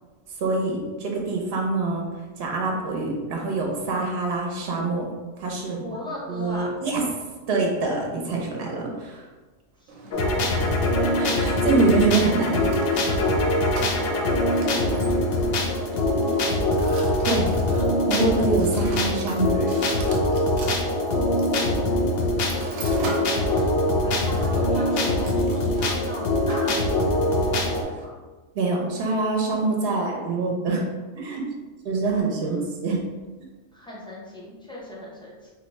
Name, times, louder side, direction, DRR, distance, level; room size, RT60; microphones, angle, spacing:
voice 1, 0.4-2.0 2.4-5.1 5.4-5.9 6.3-7.0 7.5-9.2 11.0-12.7 17.2-17.5 18.1-19.5 28.5-30.8 31.1-31.4 31.8-33.0, right 3 dB, 60° right, -1 dB, 0.8 m, -25 dB
voice 2, 5.6-6.7 9.8-11.1 13.9-16.5 21.0-22.2 23.2-28.2 32.5-32.6 33.7-35.5, left 1 dB, 5° left, -5 dB, 0.4 m, -40 dB
Mechanisms, 9.9-28.0, right 2 dB, 90° right, 1.0 m, -41 dB
sound 1, 10.1-27.8, left 1 dB, 65° left, 0.6 m, -23 dB
2.7 x 2.2 x 4.0 m, 1.3 s
omnidirectional pair, 1.4 m